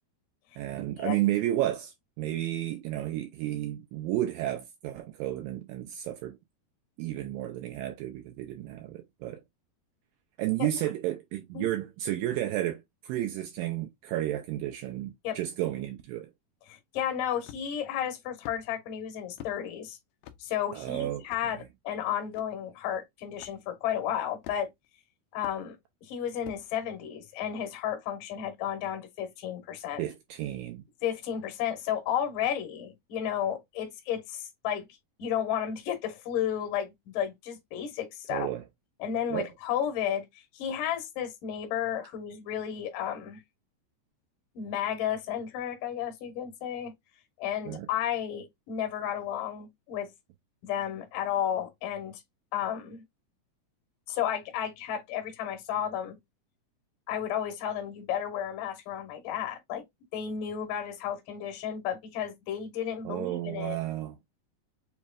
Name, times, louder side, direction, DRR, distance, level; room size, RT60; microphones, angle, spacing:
voice 1, 0.6-6.4 7.0-9.4 10.4-16.3 20.7-21.3 30.0-30.8 38.3-38.6 39.3-39.5 47.7-47.9 63.1-64.2, right 13 dB, 90° right, 2.0 m, -32 dB
voice 2, 16.7-20.0 20.4-24.7 25.3-25.8 26.0-30.0 31.0-34.9 35.2-38.5 39.0-40.3 40.5-43.4 44.6-46.9 47.4-50.1 50.6-52.2 52.5-53.0 54.1-56.2 57.1-59.8 60.1-63.8, left 9 dB, 65° left, 2.5 m, -32 dB
sound 1, 17.4-17.9 18.4-18.6 19.4-19.6 20.2-20.4 21.3-21.5 22.3-22.4 23.4-23.6 24.4-24.9 25.4-25.6 26.4-26.7, left 11 dB, 90° left, 2.0 m, -46 dB
6.9 x 3.1 x 2.4 m
omnidirectional pair, 4.7 m